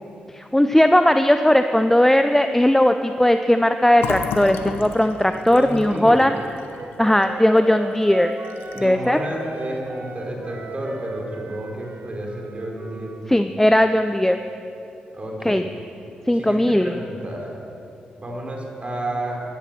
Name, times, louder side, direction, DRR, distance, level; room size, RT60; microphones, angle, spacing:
voice 1, 0.3-6.4 7.0-8.4 8.7-9.2 13.3-14.4 15.4-15.6 16.3-17.0, left 1 dB, 10° left, 8 dB, 0.7 m, -17 dB
Fill (with liquid), 4.0-7.6 8.0-8.1 8.4-9.1, left 5 dB, 85° left, 1.0 m, -33 dB
voice 2, 5.5-6.2 8.7-13.1 15.1-15.7 16.3-17.5 18.2-19.4, right 1 dB, 35° right, -1 dB, 4.5 m, -31 dB
Wind instrument woodwind instrument, 5.6-9.2 9.4-13.3, right 4 dB, 65° right, 1.4 m, -38 dB
15.5 x 11.5 x 7.6 m, 2.8 s
supercardioid pair, 45°, 4 cm